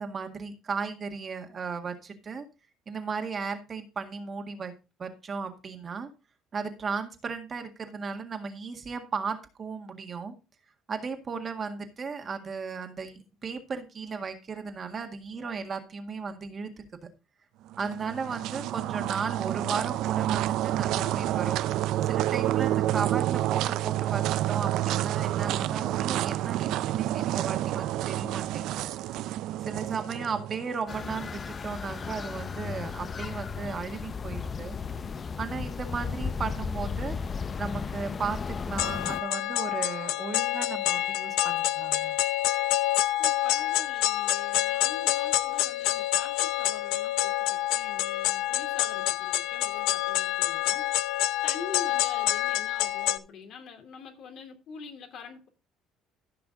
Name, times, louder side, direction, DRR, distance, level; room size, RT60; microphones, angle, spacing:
voice 1, 0.0-2.4 2.9-4.7 5.0-6.1 6.5-10.3 10.9-16.7 17.0-17.1 17.8-21.6 22.0-28.9 29.6-34.8 35.4-37.2 37.6-42.1, right 5 dB, 35° right, 1.8 m, -35 dB
sound 1, 17.7-31.0, right 14 dB, 70° right, 0.5 m, -29 dB
sound 2, 30.9-39.2, left 5 dB, 30° left, 0.6 m, -35 dB
sound 3, 38.8-53.2, left 15 dB, 85° left, 0.7 m, -27 dB
voice 2, 43.2-50.9 51.1-55.5, left 6 dB, 60° left, 2.9 m, -45 dB
14.5 x 5.9 x 3.9 m
cardioid pair, 120°, 0 cm